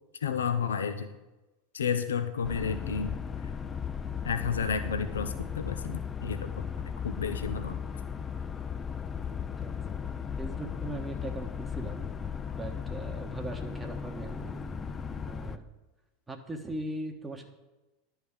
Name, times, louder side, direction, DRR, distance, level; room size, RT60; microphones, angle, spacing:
voice 1, 0.2-1.1 1.7-3.2 4.2-7.8, left 6 dB, 85° left, 9 dB, 0.4 m, -32 dB
sound 1, 2.4-15.6, left 7 dB, 25° left, 0.4 m, -36 dB
voice 2, 10.4-12.0 12.5-14.6 15.3-15.6 16.3-17.5, right 2 dB, 15° right, 4 dB, 1.0 m, -39 dB
10.5 x 3.5 x 7.0 m, 1.1 s
hypercardioid pair, 95°, 0 cm